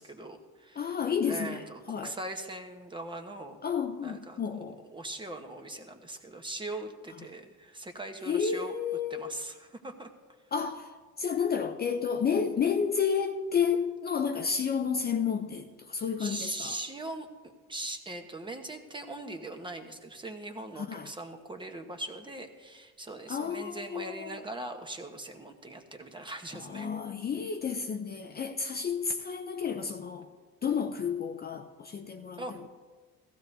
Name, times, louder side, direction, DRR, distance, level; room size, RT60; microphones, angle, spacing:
voice 1, 0.0-1.0 1.2-3.6 4.0-4.6 4.9-8.7 9.1-10.1 16.2-26.9 32.4-32.7, right 2 dB, 15° right, 1.0 m, -41 dB
voice 2, 0.8-2.1 3.6-4.8 8.3-9.3 10.5-10.9 11.2-16.8 20.8-21.1 23.3-24.4 26.5-30.3 30.6-32.4, left 6 dB, 30° left, 0.6 m, -31 dB
16.0 x 15.0 x 2.7 m
cardioid pair, 130°, 32 cm